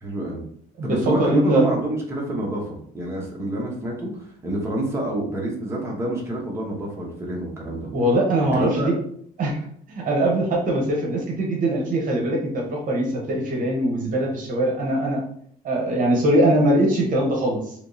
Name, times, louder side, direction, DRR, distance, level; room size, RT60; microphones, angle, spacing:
voice 1, 0.0-0.4 0.8-7.9 8.5-8.9, right 1 dB, 15° right, -3 dB, 1.0 m, -27 dB
voice 2, 0.8-1.6 7.9-9.0 9.4-9.6 9.9-15.2 15.6-17.7, right 1 dB, 55° right, -1 dB, 1.0 m, -22 dB
3.5 x 2.9 x 2.7 m, 0.63 s
cardioid pair, 110°, 17 cm